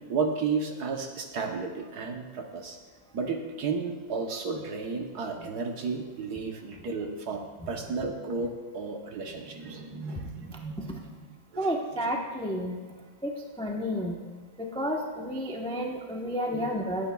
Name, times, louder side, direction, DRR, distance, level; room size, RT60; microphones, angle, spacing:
voice 1, 0.1-2.8 3.1-7.4 7.7-11.3 11.5-11.7 16.5-16.7, right 4 dB, 60° right, 3 dB, 1.4 m, -33 dB
voice 2, 11.6-12.8 13.2-13.3 13.6-14.2 14.8-17.1, equal, 10° left, 0 dB, 0.3 m, -30 dB
20.5 x 9.2 x 2.3 m, 1.5 s
omnidirectional pair, 2.2 m